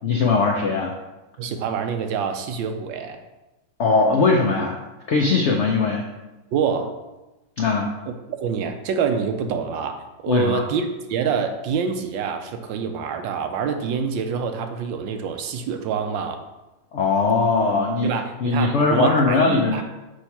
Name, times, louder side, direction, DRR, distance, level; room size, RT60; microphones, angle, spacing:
voice 1, 0.0-0.9 3.8-4.7 5.1-6.1 7.6-7.9 10.3-10.6 16.9-18.1 18.4-19.8, left 4 dB, 75° left, 0 dB, 0.6 m, -20 dB
voice 2, 1.4-3.2 6.5-7.0 8.1-8.2 8.4-16.4 18.0-19.8, right 6 dB, 85° right, 7 dB, 1.4 m, -26 dB
6.2 x 3.1 x 5.7 m, 1.0 s
omnidirectional pair, 2.0 m